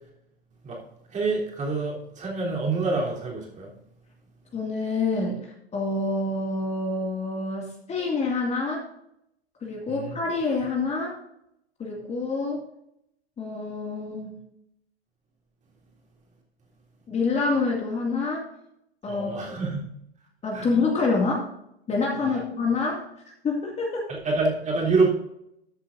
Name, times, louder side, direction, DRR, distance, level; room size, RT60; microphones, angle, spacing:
voice 1, 1.1-3.7 9.9-10.2 19.1-19.9 20.5-20.7 22.2-22.4 24.1-25.1, right 3 dB, 25° right, -3 dB, 3.5 m, -26 dB
voice 2, 4.5-8.8 9.6-11.2 11.8-12.6 13.4-14.4 17.1-18.5 19.0-19.5 20.4-21.5 21.9-23.0 23.4-24.0, left 3 dB, 20° left, -1 dB, 2.3 m, -27 dB
13.5 x 8.1 x 2.7 m, 0.78 s
figure-of-eight pair, 100°, 32 cm